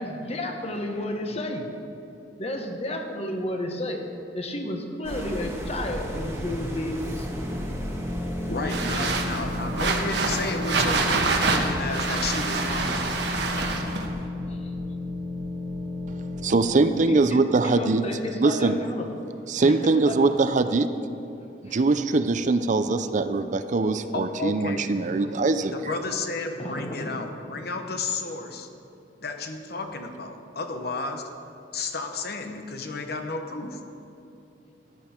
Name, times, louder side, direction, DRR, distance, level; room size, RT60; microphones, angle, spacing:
voice 1, 0.0-1.7 2.4-4.0 4.3-7.3 13.6-14.9 17.1-17.2 17.6-19.1 19.6-20.2 21.6-21.9 26.6-27.2, left 1 dB, 35° left, 3 dB, 1.3 m, -32 dB
sound 1, 5.0-14.3, equal, 15° right, 1.5 m, -36 dB
sound 2, 6.7-18.2, left 2 dB, 10° left, 1.8 m, -34 dB
voice 2, 8.5-13.1 24.1-25.3 25.7-28.7 29.2-31.3 31.7-33.8, left 3 dB, 65° left, 5 dB, 1.1 m, -32 dB
sound 3, 8.7-14.1, right 3 dB, 70° right, 1.2 m, -26 dB
voice 3, 16.4-18.0 18.4-18.8 19.5-20.9 21.6-25.9, right 3 dB, 45° right, 10 dB, 0.5 m, -22 dB
15.5 x 10.5 x 4.4 m, 2.7 s
head